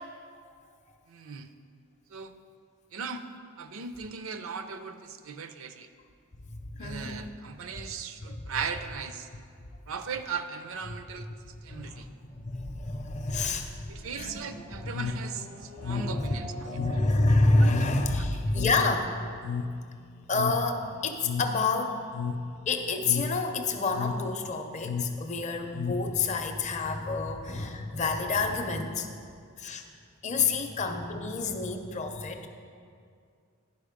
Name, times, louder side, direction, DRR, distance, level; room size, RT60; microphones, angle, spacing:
voice 1, 1.1-1.5 2.1-2.3 2.9-3.3 3.6-5.9 6.8-9.3 9.9-11.3 11.6-12.1 13.3-13.6 13.9-16.8 17.6-17.7 18.1-18.2, right 5 dB, 65° right, 9 dB, 0.5 m, -38 dB
voice 2, 6.5-7.2 7.7-7.9 8.2-8.4 10.9-11.0 11.7-14.5 14.8-14.9 15.8-16.4 16.7-19.2 20.3-22.0 22.7-29.1 29.6-29.8 30.2-32.5, left 3 dB, 35° left, 5 dB, 0.6 m, -28 dB
Race car auto racing / Accelerating revving vroom, 12.5-17.8, equal, 85° right, 1.3 m, -44 dB
sound 1, 14.9-26.5, left 5 dB, 80° left, 0.4 m, -35 dB
10.5 x 5.2 x 5.0 m, 2.3 s
head